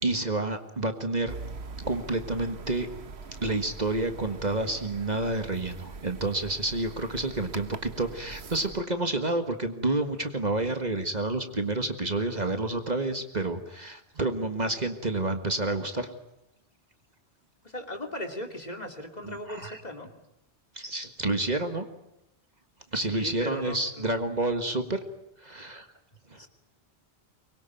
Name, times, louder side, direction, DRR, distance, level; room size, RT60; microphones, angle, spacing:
voice 1, 0.0-1.3 1.8-2.9 3.4-16.1 19.2-19.8 20.7-21.8 22.9-25.0 25.4-25.9 26.3-26.4, right 2 dB, 40° right, 7 dB, 1.7 m, -29 dB
sound 1, 1.3-8.8, right 4 dB, 70° right, 1.5 m, -43 dB
voice 2, 17.6-20.1 23.0-24.1 26.4-26.5, left 1 dB, 40° left, 4 dB, 2.9 m, -38 dB
24.5 x 22.0 x 9.2 m, 0.87 s
omnidirectional pair, 1.1 m